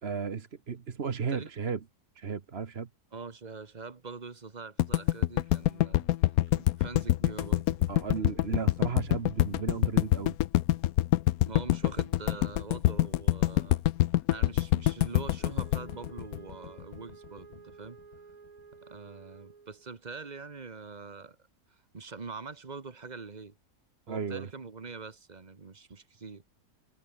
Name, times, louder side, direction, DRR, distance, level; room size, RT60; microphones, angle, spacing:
voice 1, 0.0-1.8 2.1-2.9 7.9-10.4 24.1-24.5, right 6 dB, 45° right, 1.4 m, -34 dB
voice 2, 3.1-6.1 6.5-7.9 11.5-13.8 14.3-18.0 18.8-21.4 21.9-23.5 24.1-26.4, right 4 dB, 30° right, 1.6 m, -44 dB
sound 1, 4.8-17.0, left 15 dB, 70° left, 1.0 m, -25 dB
Wind instrument woodwind instrument, 15.4-20.0, right 5 dB, 65° right, 2.6 m, -53 dB
omnidirectional pair, 1.7 m